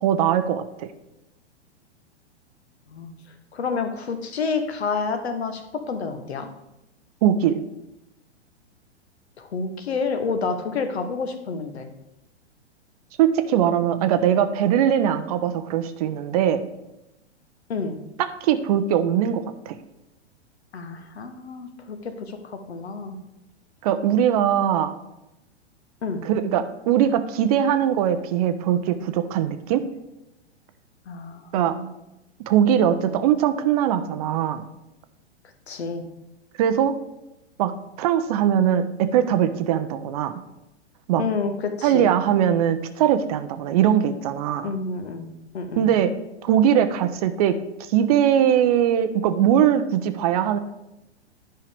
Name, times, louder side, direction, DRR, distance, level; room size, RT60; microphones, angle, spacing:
voice 1, 0.0-0.9 7.2-7.6 13.2-16.7 18.2-19.8 23.8-24.9 26.2-29.8 31.5-31.7 32.5-34.7 36.6-36.9 37.6-37.7 38.0-40.3 41.1-41.3 41.8-44.7 45.8-46.1 46.4-47.5 47.9-50.6, right 9 dB, 35° right, 11 dB, 0.5 m, -21 dB
voice 2, 3.5-5.6 5.9-6.5 9.4-11.9 17.7-18.0 20.7-23.2 26.0-26.2 31.1-31.9 35.7-36.0 41.2-42.1 44.6-45.3 45.5-45.9, left 4 dB, 65° left, 7 dB, 1.1 m, -29 dB
10.5 x 5.6 x 3.4 m, 0.91 s
figure-of-eight pair, 105°, 34 cm